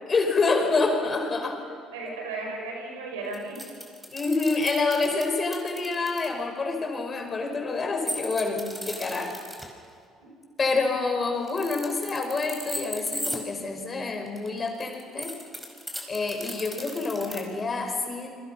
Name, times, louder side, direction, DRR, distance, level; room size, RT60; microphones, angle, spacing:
voice 1, 0.1-1.6 2.1-2.2 4.1-9.4 10.6-15.3 16.1-18.4, left 3 dB, 35° left, 3 dB, 5.4 m, -27 dB
voice 2, 1.9-3.6 8.9-9.0 10.2-10.6, right 3 dB, 85° right, 1 dB, 5.5 m, -36 dB
sound 1, 3.3-6.3 8.1-9.7 11.4-13.4 14.3-17.4, equal, 5° right, 5.0 m, -36 dB
29.5 x 22.5 x 5.8 m, 2.2 s
hypercardioid pair, 60°, 0 cm